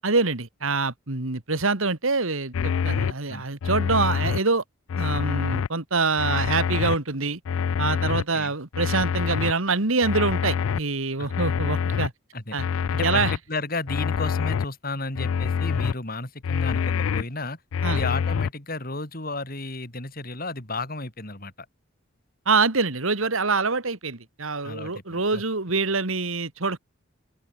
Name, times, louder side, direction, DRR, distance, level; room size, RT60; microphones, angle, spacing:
voice 1, 0.0-4.6 5.0-7.4 7.8-12.1 12.5-12.6 13.0-13.3 17.8-18.0 22.5-26.8, right 4 dB, 80° right, 2.1 m, -25 dB
sound 1, 2.5-3.1 3.6-4.4 4.9-5.7 6.2-6.9 7.4-8.2 8.7-9.5 10.0-10.8 11.3-12.1 12.6-13.4 13.9-14.6 15.1-15.9 16.4-17.2 17.7-18.5, left 6 dB, 80° left, 0.4 m, -25 dB
voice 2, 8.0-8.5 11.2-11.6 12.3-12.6 12.9-17.6 17.8-21.7 24.6-25.4, left 2 dB, 45° left, 4.6 m, -33 dB
open air
head